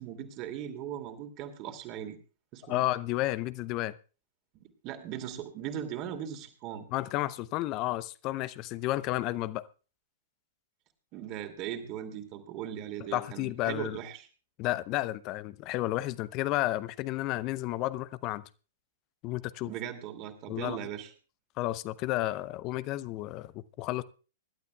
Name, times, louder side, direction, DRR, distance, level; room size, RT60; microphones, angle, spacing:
voice 1, 0.0-2.2 2.5-2.8 4.5-6.9 11.1-14.3 19.7-21.1, right 10 dB, 35° right, 2.5 m, -39 dB
voice 2, 2.7-4.0 6.9-9.7 13.1-14.0 14.6-18.4 19.2-19.7 20.5-20.8 21.6-24.0, left 16 dB, 35° left, 0.7 m, -32 dB
25.0 x 12.0 x 2.3 m
figure-of-eight pair, 105°, 0 cm